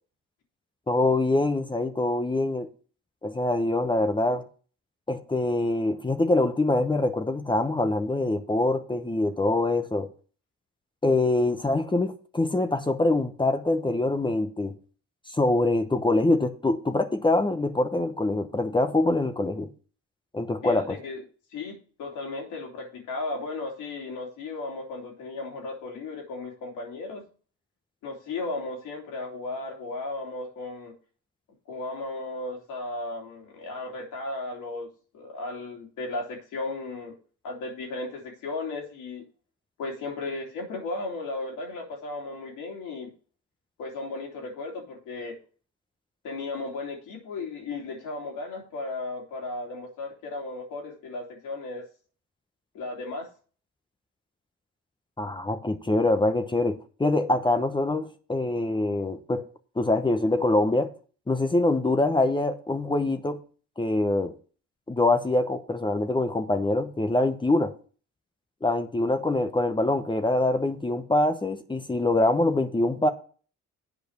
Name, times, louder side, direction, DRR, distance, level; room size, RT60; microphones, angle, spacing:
voice 1, 0.9-2.7 3.2-4.4 5.1-10.1 11.0-14.7 15.3-19.7 20.3-21.0 55.2-59.4 59.8-60.9 61.3-63.4 63.8-64.3 64.9-67.7 68.6-73.1, left 2 dB, 15° left, 0.9 m, -24 dB
voice 2, 20.6-21.2 21.5-27.2 28.0-30.9 31.7-34.9 35.1-37.1 37.4-39.2 39.8-43.1 43.8-45.4 46.2-51.8 52.7-53.3, left 2 dB, 90° left, 3.1 m, -35 dB
8.4 x 5.0 x 6.6 m
cardioid pair, 90°, 30 cm